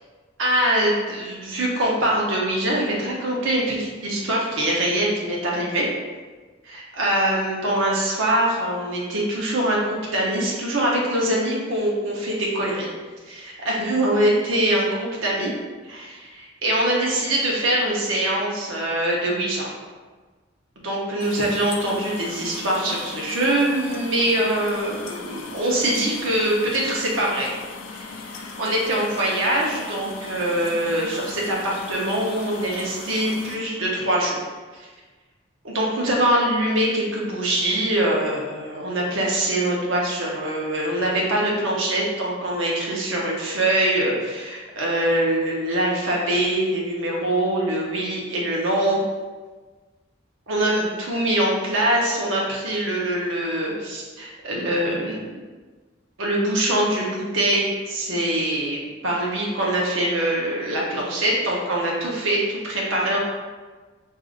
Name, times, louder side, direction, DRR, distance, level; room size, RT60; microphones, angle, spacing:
voice 1, 0.4-5.9 6.6-12.9 13.3-15.5 15.8-19.7 20.8-27.5 27.9-34.4 34.7-34.9 35.6-49.0 50.5-55.2 56.2-63.2, right 1 dB, 85° right, -3 dB, 0.9 m, -23 dB
sound 1, 21.2-33.6, left 4 dB, 85° left, 0.4 m, -38 dB
5.0 x 2.6 x 2.5 m, 1.3 s
head